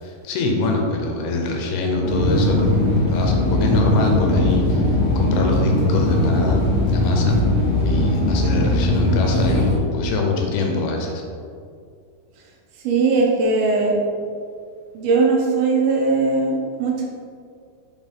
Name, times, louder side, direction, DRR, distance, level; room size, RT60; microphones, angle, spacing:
voice 1, 0.0-2.8 3.1-6.6 6.9-7.4 7.9-11.2, left 2 dB, 80° left, 2 dB, 2.7 m, -24 dB
sound 1, 2.0-9.7, left 1 dB, 50° left, 1.8 m, -19 dB
voice 2, 12.8-13.9 14.9-17.1, right 4 dB, 75° right, -1 dB, 2.5 m, -19 dB
6.2 x 6.1 x 3.6 m, 2.3 s
omnidirectional pair, 4.6 m